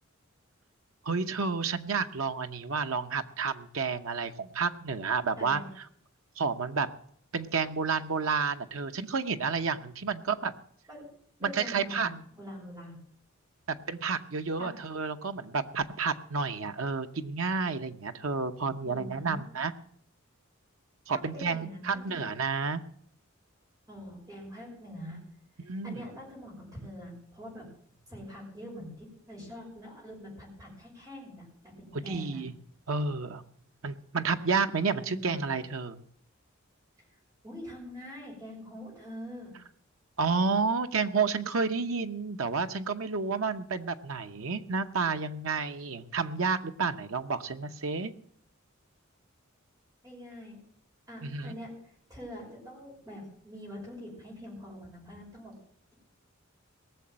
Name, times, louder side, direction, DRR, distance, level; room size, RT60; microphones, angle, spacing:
voice 1, 1.0-5.6 6.4-6.9 7.3-10.5 11.4-12.1 13.9-19.7 21.1-22.8 25.6-26.1 31.9-32.5 32.9-33.4 33.8-36.0 40.2-48.1 51.2-51.5, right 5 dB, 90° right, 8 dB, 0.9 m, -30 dB
voice 2, 5.4-5.7 10.9-11.1 11.4-13.0 14.6-14.7 18.8-19.4 21.1-22.2 23.9-25.2 25.8-27.7 28.1-32.4 35.0-35.4 37.4-39.5 50.0-50.6 51.1-55.5, equal, 15° right, -3 dB, 5.7 m, -44 dB
18.5 x 6.9 x 7.5 m, 0.64 s
head